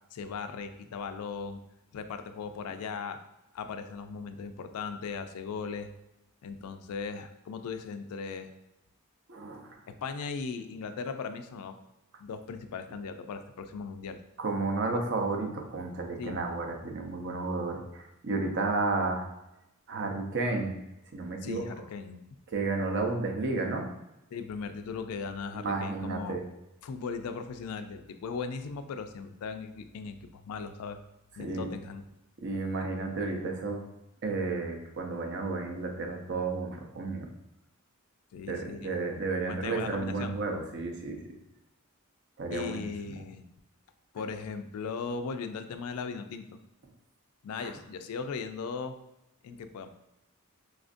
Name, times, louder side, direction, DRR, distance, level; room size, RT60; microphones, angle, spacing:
voice 1, 0.1-1.6 1.9-3.2 3.5-5.9 6.4-8.5 9.9-11.8 12.2-14.2 14.9-15.0 16.2-16.4 21.4-22.2 24.3-26.4 26.8-31.0 31.4-32.0 32.8-33.0 38.3-39.0 39.5-40.3 42.5-43.5 44.1-46.6 47.4-49.0 49.4-49.9, left 5 dB, 75° left, 8 dB, 0.3 m, -38 dB
voice 2, 9.3-9.8 14.4-19.3 19.9-20.8 21.1-21.6 22.5-23.9 25.5-26.4 31.4-31.7 32.4-33.8 34.2-37.3 38.5-41.2 42.4-42.8 47.6-47.7, right 3 dB, 55° right, 2 dB, 0.6 m, -32 dB
5.0 x 2.4 x 2.5 m, 0.91 s
head